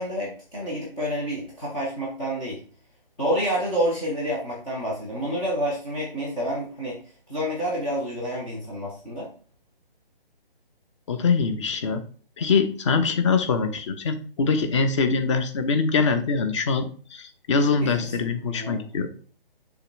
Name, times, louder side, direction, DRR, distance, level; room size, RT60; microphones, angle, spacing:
voice 1, 0.0-2.6 3.2-7.0 7.3-9.3 17.8-18.1 18.5-18.9, equal, 5° left, -7 dB, 0.4 m, -28 dB
voice 2, 11.1-12.0 12.4-19.1, left 4 dB, 30° left, 8 dB, 1.0 m, -23 dB
6.8 x 3.1 x 5.8 m, 0.40 s
figure-of-eight pair, 150°, 29 cm